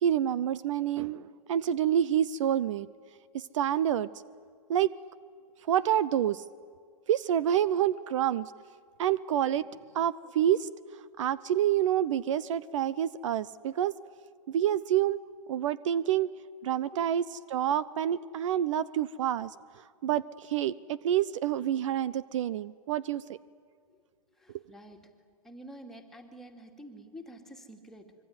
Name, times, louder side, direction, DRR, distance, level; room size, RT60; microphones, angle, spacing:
voice 1, 0.0-2.9 3.3-4.1 4.7-4.9 5.7-6.4 7.1-8.5 9.0-9.6 9.9-10.7 11.2-13.9 14.5-15.2 15.5-16.3 16.6-23.4, right 10 dB, 55° right, 18 dB, 0.7 m, -28 dB
voice 2, 24.4-25.0 25.4-28.1, equal, ahead, 1 dB, 2.5 m, -48 dB
25.5 x 24.0 x 9.6 m, 2.1 s
hypercardioid pair, 140°, 19 cm